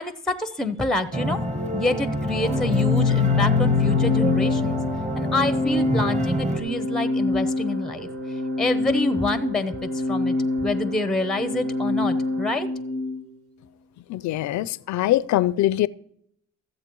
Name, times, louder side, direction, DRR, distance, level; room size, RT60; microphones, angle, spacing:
voice 1, 0.0-1.4 1.7-4.8 5.2-8.1 8.6-9.7 10.1-10.4 10.6-12.7, left 2 dB, ahead, 0.6 m, -27 dB
sound 1, 1.1-6.6, equal, 25° right, 1.2 m, -27 dB
Organ, 2.4-13.2, left 4 dB, 50° right, 1.4 m, -25 dB
voice 2, 14.1-15.9, left 14 dB, 70° left, 0.5 m, -22 dB
13.5 x 7.6 x 3.0 m
cardioid pair, 90°, 30 cm